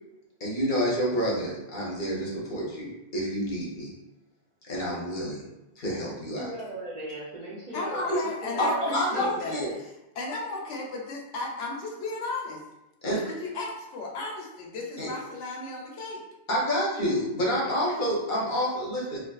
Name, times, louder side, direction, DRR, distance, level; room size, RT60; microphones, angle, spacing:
voice 1, 0.4-3.9 4.7-5.4 5.8-6.5 7.9-8.0 8.6-9.7 13.0-13.2 15.0-15.1 16.5-19.2, equal, 50° left, -5 dB, 0.7 m, -28 dB
voice 2, 6.4-9.7, right 2 dB, 50° right, -8 dB, 0.5 m, -38 dB
voice 3, 7.7-9.6 10.2-12.6 13.1-16.2 17.7-18.0, left 3 dB, 75° left, -1 dB, 0.9 m, -35 dB
2.4 x 2.3 x 2.3 m, 0.94 s
omnidirectional pair, 1.2 m